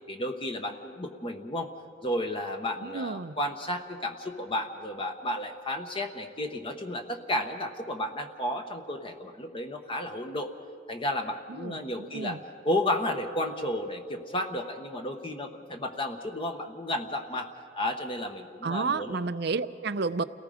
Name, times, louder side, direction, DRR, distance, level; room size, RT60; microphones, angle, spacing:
voice 1, 0.1-1.7 2.0-10.5 10.9-12.4 12.6-19.2, left 1 dB, 30° left, 5 dB, 1.1 m, -32 dB
voice 2, 2.8-3.3 11.5-12.4 18.6-20.2, right 4 dB, 65° right, 12 dB, 0.6 m, -31 dB
29.5 x 18.5 x 5.1 m, 2.3 s
head